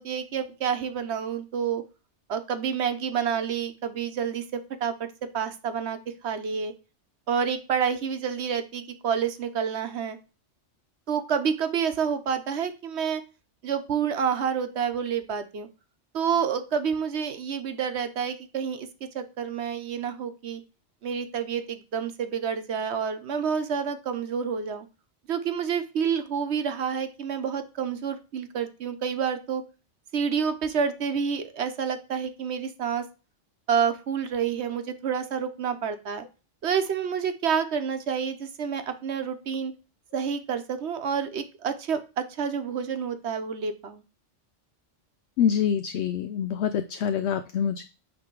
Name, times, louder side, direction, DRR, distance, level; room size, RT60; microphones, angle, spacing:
voice 1, 0.0-1.8 2.3-5.1 5.3-6.7 7.3-10.2 11.1-13.2 13.6-15.7 16.1-18.9 19.1-20.6 21.0-24.9 25.3-29.6 30.1-33.0 33.7-36.2 36.6-39.7 40.1-44.0, right 7 dB, 70° right, 9 dB, 1.1 m, -28 dB
voice 2, 45.4-47.8, left 8 dB, 70° left, 10 dB, 0.8 m, -26 dB
8.9 x 3.3 x 4.5 m, 0.31 s
omnidirectional pair, 1.2 m